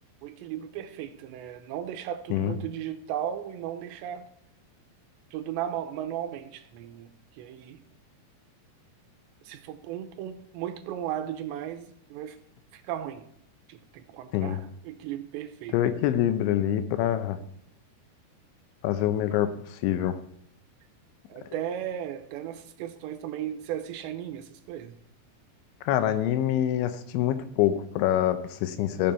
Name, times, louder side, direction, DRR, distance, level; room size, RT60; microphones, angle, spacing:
voice 1, 0.2-4.3 5.3-7.8 9.5-12.4 12.7-13.3 13.7-15.8 21.3-25.0, right 10 dB, 85° right, 3.0 m, -36 dB
voice 2, 15.7-17.4 18.8-20.2 25.9-29.1, left 11 dB, 90° left, 3.2 m, -25 dB
15.0 x 7.0 x 4.4 m
omnidirectional pair, 5.2 m